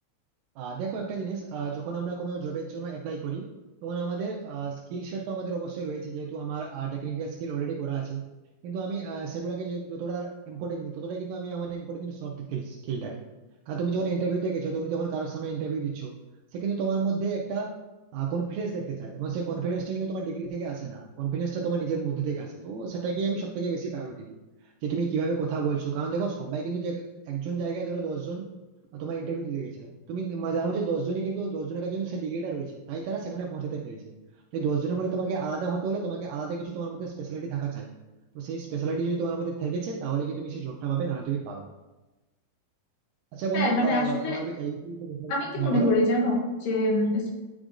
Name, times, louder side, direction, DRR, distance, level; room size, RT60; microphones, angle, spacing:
voice 1, 0.6-3.5 3.8-8.3 8.6-13.2 13.7-16.2 16.5-17.7 18.1-24.4 24.8-28.5 28.9-34.1 34.5-37.9 38.4-41.7 43.3-45.9, right 5 dB, 80° right, -1 dB, 2.1 m, -31 dB
voice 2, 43.5-44.4 45.3-47.3, left 1 dB, 70° left, -2 dB, 2.6 m, -25 dB
9.6 x 5.0 x 2.5 m, 1.1 s
omnidirectional pair, 4.3 m